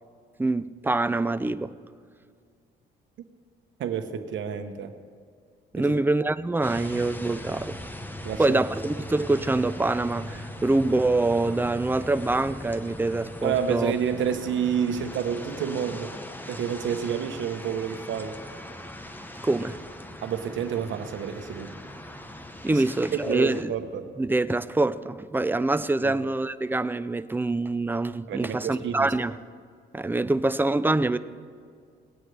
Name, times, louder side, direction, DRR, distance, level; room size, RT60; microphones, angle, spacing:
voice 1, 0.4-1.7 5.7-7.8 8.4-13.9 19.4-19.8 22.6-23.7 24.2-29.3 29.9-31.2, right 2 dB, 10° right, 14 dB, 0.4 m, -25 dB
voice 2, 3.8-4.9 5.8-6.0 8.2-8.6 13.4-16.1 16.5-18.4 20.2-21.7 22.7-22.8 23.2-24.0 26.0-26.1 28.3-29.1, right 8 dB, 75° right, 7 dB, 1.0 m, -29 dB
sound 1, 6.6-23.6, left 1 dB, 10° left, 1.0 m, -40 dB
19.0 x 9.3 x 3.3 m, 2.2 s
cardioid pair, 90°, 20 cm